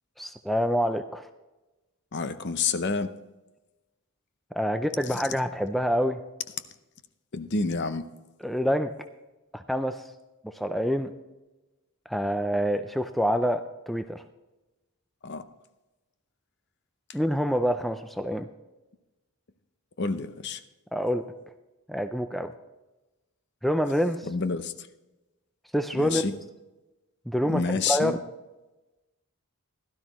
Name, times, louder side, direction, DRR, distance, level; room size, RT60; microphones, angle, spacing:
voice 1, 0.2-1.3 4.5-6.2 8.4-8.9 9.5-10.1 10.4-11.1 12.1-14.2 17.1-18.5 20.9-21.2 21.9-22.5 23.6-24.3 25.7-26.2 27.3-27.6 27.9-28.2, equal, ahead, 8 dB, 0.3 m, -26 dB
voice 2, 2.1-3.1 5.1-5.2 7.3-8.1 15.2-15.4 20.0-20.6 24.3-24.9 25.9-26.3 27.4-28.2, left 4 dB, 50° left, 11 dB, 0.7 m, -29 dB
16.5 x 12.0 x 3.0 m, 1.1 s
head